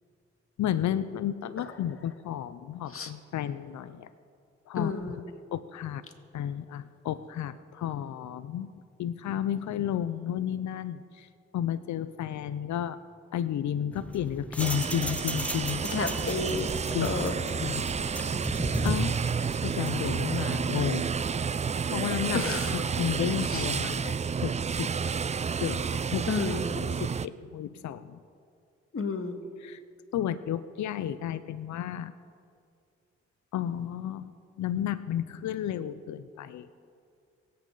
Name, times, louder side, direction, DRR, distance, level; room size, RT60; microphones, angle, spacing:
voice 1, 0.6-4.1 4.7-4.9 5.5-6.0 6.3-8.7 9.0-11.3 11.5-13.0 13.3-15.8 16.9-17.2 17.6-17.8 18.8-19.1 19.6-21.1 21.9-24.1 24.4-25.1 25.6-25.8 26.1-26.3 26.9-28.2 29.6-29.8 30.1-32.1 33.5-36.7, left 10 dB, 75° left, 13 dB, 0.6 m, -32 dB
voice 2, 4.8-5.2 15.9-16.7 17.0-17.4 22.3-22.7 23.5-23.6 26.3-26.6 28.9-29.4, left 4 dB, 50° left, 5 dB, 1.8 m, -31 dB
sound 1, 13.9-20.1, left 1 dB, 5° left, 0.8 m, -37 dB
sound 2, 14.6-27.3, right 6 dB, 25° right, 0.3 m, -30 dB
24.5 x 8.7 x 4.0 m, 2.3 s
supercardioid pair, 45°, 29 cm